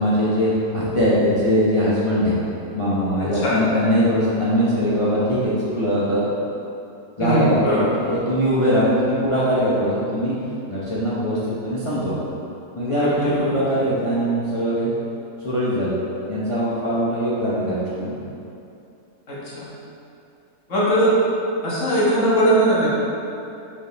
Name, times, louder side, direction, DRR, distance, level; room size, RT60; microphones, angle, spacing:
voice 1, 0.0-2.4 2.7-6.5 7.2-10.3 10.7-11.4 11.6-12.1 12.8-14.9 15.4-16.0 16.3-18.2, equal, 25° left, -9 dB, 0.7 m, -21 dB
voice 2, 3.2-3.6 7.2-7.9 13.0-13.6 19.3-19.7 20.7-21.2 21.6-22.9, right 1 dB, 45° left, -7 dB, 1.7 m, -20 dB
5.4 x 5.1 x 4.0 m, 2.7 s
omnidirectional pair, 1.8 m